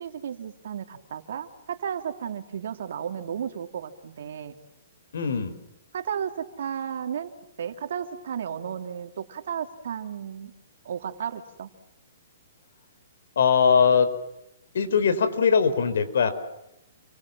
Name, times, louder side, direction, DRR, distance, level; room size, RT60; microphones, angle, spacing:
voice 1, 0.0-4.5 5.9-7.3 7.6-10.5 10.8-11.7, right 8 dB, 65° right, 7 dB, 3.2 m, -33 dB
voice 2, 5.1-5.6 13.4-14.1 14.7-16.3, left 6 dB, 75° left, 10 dB, 5.1 m, -21 dB
29.0 x 25.0 x 7.5 m, 0.84 s
hypercardioid pair, 160°, 0 cm